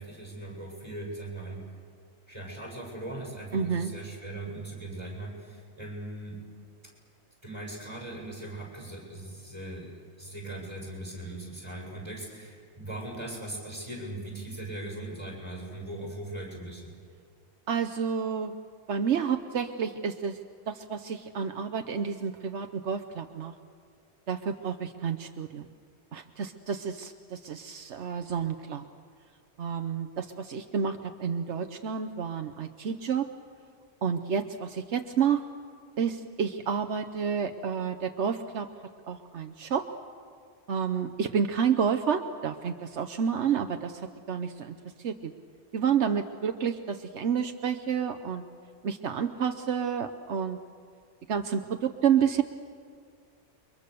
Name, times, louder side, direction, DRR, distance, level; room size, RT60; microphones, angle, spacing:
voice 1, 0.0-1.6 2.3-6.4 7.4-9.9 10.2-16.9, right 1 dB, 25° right, -2 dB, 7.5 m, -39 dB
voice 2, 3.5-3.9 17.7-18.5 18.9-20.4 20.7-23.5 24.3-25.6 26.1-28.9 29.6-33.3 34.0-35.4 36.0-38.7 39.1-39.9 40.7-45.3 45.7-48.4 48.8-50.6 51.3-52.4, right 7 dB, 75° right, 7 dB, 1.2 m, -29 dB
29.5 x 24.0 x 6.9 m, 2.1 s
omnidirectional pair, 1.2 m